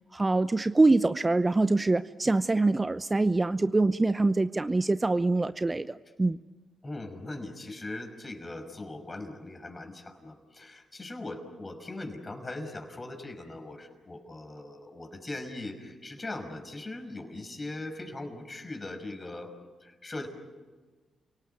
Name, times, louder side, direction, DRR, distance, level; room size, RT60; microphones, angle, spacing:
voice 1, 0.1-6.4, right 2 dB, 25° right, 13 dB, 0.7 m, -24 dB
voice 2, 6.8-19.5 19.8-20.3, left 2 dB, 30° left, 5 dB, 5.7 m, -40 dB
30.0 x 18.5 x 9.5 m, 1.3 s
supercardioid pair, 45°, 0 cm